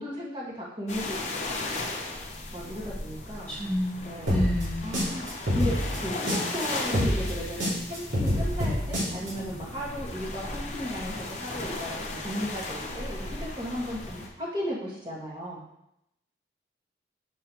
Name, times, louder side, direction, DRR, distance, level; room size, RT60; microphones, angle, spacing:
voice 1, 0.0-1.8 2.5-3.6 4.0-4.4 4.8-5.2 5.6-15.6, equal, 25° right, -5 dB, 1.7 m, -35 dB
sound 1, 0.9-14.3, left 2 dB, 40° left, 0.9 m, -36 dB
voice 2, 3.5-5.0, left 1 dB, 10° left, -10 dB, 1.5 m, -30 dB
sound 2, 4.3-6.6 6.9-9.3, equal, 85° right, 2.7 m, -27 dB
6.8 x 6.4 x 3.0 m, 0.81 s
head